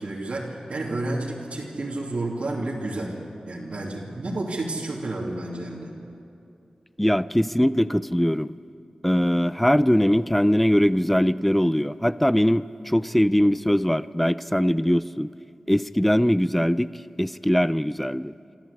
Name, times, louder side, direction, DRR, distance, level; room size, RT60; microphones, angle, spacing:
voice 1, 0.0-3.2 3.5-5.9, right 2 dB, 75° right, -4 dB, 2.8 m, -30 dB
voice 2, 7.0-8.5 9.0-15.3 15.7-16.9 17.2-18.3, equal, 5° left, 16 dB, 0.5 m, -21 dB
26.5 x 13.5 x 8.6 m, 2.6 s
wide cardioid pair, 75°, 2 cm